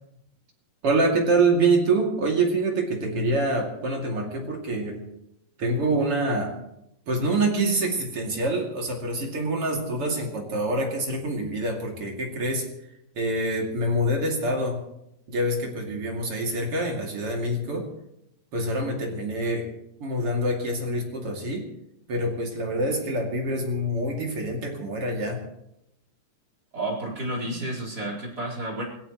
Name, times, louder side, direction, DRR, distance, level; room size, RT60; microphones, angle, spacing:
voice 1, 0.8-5.0 5.6-6.6 7.1-12.7 13.1-14.8 15.3-17.9 18.5-19.7 20.0-21.7 22.1-25.4, right 2 dB, 40° right, 0 dB, 3.2 m, -26 dB
voice 2, 26.7-28.8, right 1 dB, 25° right, -1 dB, 4.8 m, -31 dB
26.5 x 17.5 x 3.1 m, 0.83 s
omnidirectional pair, 4.2 m